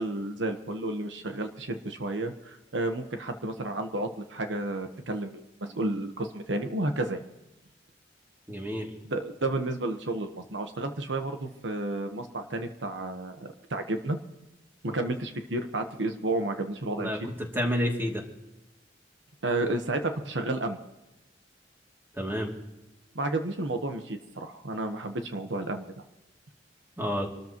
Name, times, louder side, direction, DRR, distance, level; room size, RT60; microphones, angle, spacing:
voice 1, 0.0-7.2 9.0-14.2 14.8-17.1 19.4-20.8 23.1-25.9, right 2 dB, 80° right, 6 dB, 1.2 m, -31 dB
voice 2, 8.5-8.9 17.0-17.2 17.5-18.2 22.1-22.5 27.0-27.3, equal, 10° right, 0 dB, 2.7 m, -29 dB
27.0 x 13.5 x 3.1 m, 0.98 s
head